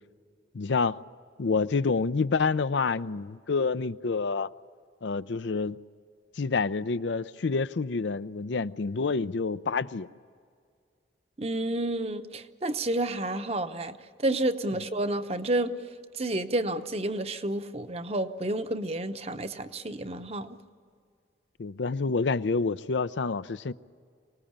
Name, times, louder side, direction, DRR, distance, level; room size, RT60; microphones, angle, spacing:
voice 1, 0.5-1.0 1.4-4.5 5.0-5.8 6.4-10.1 21.6-23.7, left 4 dB, 70° left, 0.5 m, -28 dB
voice 2, 11.4-15.7 16.2-20.5, right 1 dB, 30° right, 0.9 m, -30 dB
25.0 x 19.5 x 8.8 m
head